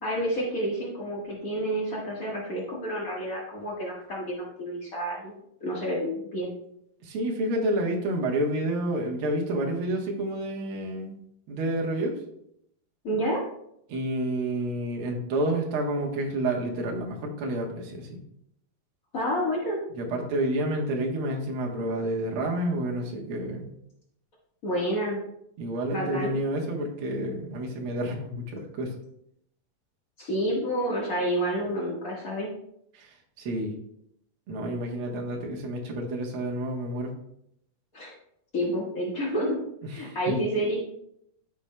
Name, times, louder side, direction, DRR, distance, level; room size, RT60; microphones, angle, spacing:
voice 1, 0.0-5.3 5.6-6.5 13.0-13.4 19.1-19.8 24.6-25.2 25.9-26.3 30.2-32.5 37.9-38.1 38.5-39.6 39.9-40.8, equal, 70° left, -5 dB, 0.8 m, -29 dB
voice 2, 7.0-11.2 11.5-12.2 13.9-18.2 19.9-23.7 25.6-28.9 32.9-33.7 34.5-37.1 39.8-40.3, right 1 dB, 70° right, 0 dB, 1.3 m, -29 dB
14.5 x 6.0 x 2.2 m, 0.75 s
omnidirectional pair, 4.2 m